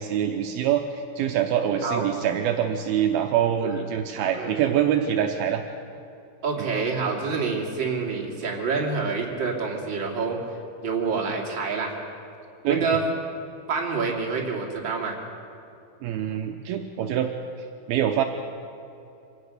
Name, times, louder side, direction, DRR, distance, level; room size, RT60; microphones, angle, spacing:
voice 1, 0.0-5.6 6.6-6.7 12.6-12.9 16.0-17.3 17.9-18.2, right 9 dB, 85° right, 5 dB, 2.2 m, -25 dB
voice 2, 6.4-10.4 10.8-11.9 12.7-13.0 13.7-15.2, right 4 dB, 30° right, -2 dB, 2.7 m, -27 dB
25.5 x 18.0 x 6.6 m, 2.8 s
omnidirectional pair, 5.4 m